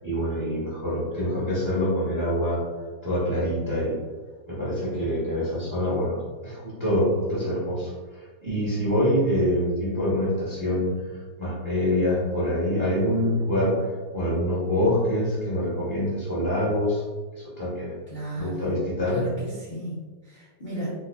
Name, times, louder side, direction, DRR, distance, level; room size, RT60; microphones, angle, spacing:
voice 1, 0.0-2.6 3.0-4.0 4.5-13.8 14.1-17.0 17.4-17.9 18.4-19.3, equal, 30° right, -8 dB, 0.4 m, -25 dB
voice 2, 18.1-18.8 19.1-20.0 20.3-20.9, right 1 dB, 85° left, -9 dB, 0.4 m, -34 dB
4.0 x 2.5 x 2.4 m, 1.4 s
omnidirectional pair, 2.0 m